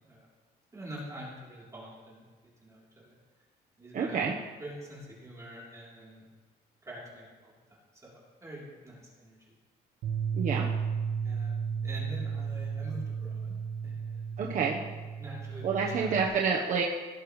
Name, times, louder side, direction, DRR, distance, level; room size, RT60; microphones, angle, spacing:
voice 1, 0.7-2.2 2.6-3.2 3.8-4.3 4.6-6.2 6.8-9.5 11.2-13.5 13.8-14.3 14.9-16.2, right 1 dB, 20° right, -6 dB, 3.4 m, -46 dB
voice 2, 3.9-4.3 10.3-10.7 14.4-14.8 15.6-16.8, right 5 dB, 50° right, -1 dB, 1.1 m, -28 dB
Bass guitar, 10.0-16.3, right 6 dB, 80° right, 1.3 m, -34 dB
17.5 x 6.9 x 3.2 m, 1.3 s
cardioid pair, 110°, 17 cm